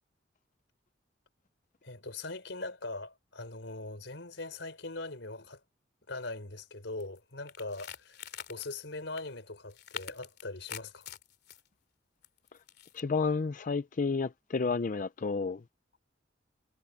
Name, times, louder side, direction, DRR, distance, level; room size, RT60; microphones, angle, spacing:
voice 1, 1.8-5.6 6.1-8.2 8.5-11.1, left 2 dB, 80° left, 4.4 m, -41 dB
sound 1, 7.0-7.2 7.5-8.8 9.2-9.3 9.7-11.6 12.2-13.0, left 9 dB, 65° left, 2.6 m, -44 dB
voice 2, 12.9-15.6, left 4 dB, 45° left, 0.5 m, -31 dB
head